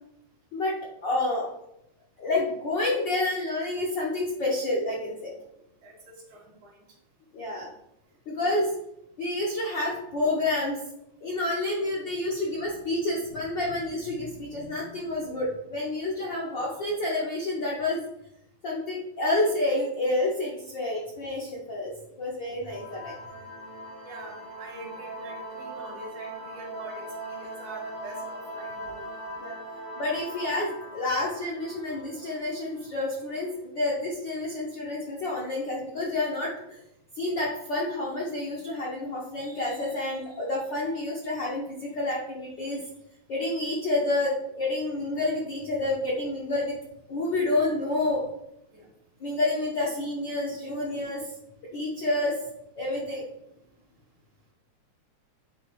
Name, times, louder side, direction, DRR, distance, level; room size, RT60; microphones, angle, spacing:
voice 1, 1.0-1.5 2.2-5.3 7.3-7.7 8.3-8.7 9.2-10.8 11.2-18.0 18.6-21.9 22.2-23.1 29.4-29.6 30.0-36.8 37.2-42.8 43.3-46.7 47.1-48.2 49.2-51.3 51.7-52.3 52.8-53.2, left 2 dB, 65° left, -4 dB, 1.1 m, -29 dB
voice 2, 5.8-6.8 24.0-24.3 24.6-29.0 48.7-48.9, right 1 dB, 75° right, -1 dB, 3.2 m, -44 dB
sound 1, 22.6-33.0, right 1 dB, 50° right, 1.3 m, -40 dB
9.6 x 3.4 x 3.1 m, 0.80 s
omnidirectional pair, 3.3 m